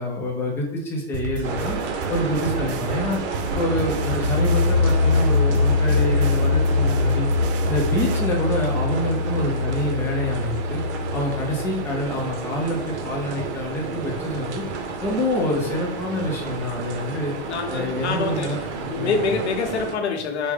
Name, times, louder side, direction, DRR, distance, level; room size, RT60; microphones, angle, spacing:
voice 1, 0.0-1.8 2.1-3.2 3.6-7.3 7.7-10.8 11.1-14.6 15.0-17.3 17.7-19.1, left 1 dB, 5° left, -2 dB, 0.4 m, -26 dB
sound 1, 1.1-8.2, right 5 dB, 55° right, 0.4 m, -32 dB
sound 2, 1.4-20.0, right 4 dB, 90° right, 0.7 m, -31 dB
sound 3, 3.5-13.1, left 4 dB, 35° right, 1.4 m, -23 dB
voice 2, 17.5-18.6 18.9-20.5, left 4 dB, 85° left, 5 dB, 0.8 m, -26 dB
4.7 x 2.1 x 3.2 m, 0.81 s
hypercardioid pair, 145°, 33 cm